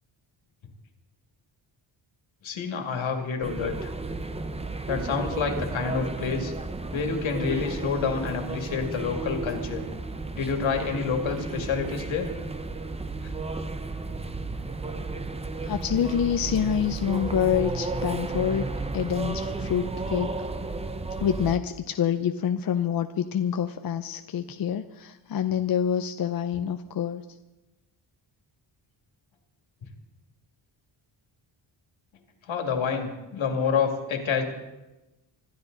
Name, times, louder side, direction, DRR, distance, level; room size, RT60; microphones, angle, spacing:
voice 1, 2.4-3.9 4.9-6.5 6.9-9.8 10.3-12.3 13.2-13.3 14.0-14.2 32.5-34.4, left 5 dB, 70° left, 4 dB, 2.5 m, -28 dB
sound 1, 3.4-21.6, right 3 dB, 15° right, 0.6 m, -33 dB
voice 2, 15.6-18.7 18.9-20.3 21.2-27.2, left 8 dB, 50° left, 8 dB, 0.6 m, -27 dB
25.5 x 12.5 x 4.0 m, 1.0 s
wide cardioid pair, 165°, 48 cm